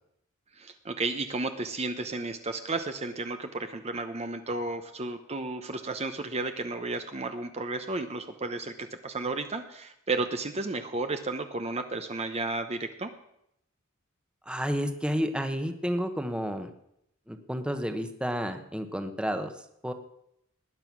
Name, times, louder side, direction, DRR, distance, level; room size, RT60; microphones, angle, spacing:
voice 1, 0.6-13.1, right 3 dB, 30° right, 7 dB, 0.9 m, -33 dB
voice 2, 14.4-16.7 17.3-19.5 19.8-19.9, equal, 5° right, 7 dB, 1.2 m, -31 dB
19.5 x 10.0 x 6.1 m, 0.77 s
head